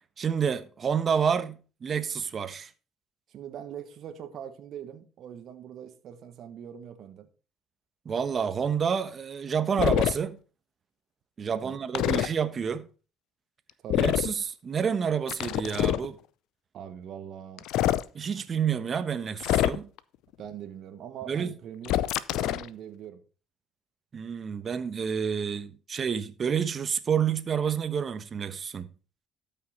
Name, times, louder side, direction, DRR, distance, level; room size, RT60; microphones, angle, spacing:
voice 1, 0.2-2.7 8.0-10.4 11.4-12.9 13.9-16.2 18.1-19.9 21.3-21.5 24.1-28.9, right 7 dB, 45° right, 1.2 m, -29 dB
voice 2, 3.3-7.3 11.5-11.8 13.8-14.0 16.7-17.6 20.4-22.0 22.3-23.2, right 9 dB, 65° right, 1.4 m, -42 dB
sound 1, 9.8-10.1 11.9-12.3 13.9-14.3 15.3-16.1 17.6-18.0 19.4-20.0 21.8-22.7, left 13 dB, 75° left, 0.5 m, -25 dB
12.5 x 5.8 x 4.2 m
supercardioid pair, 65°, 0 cm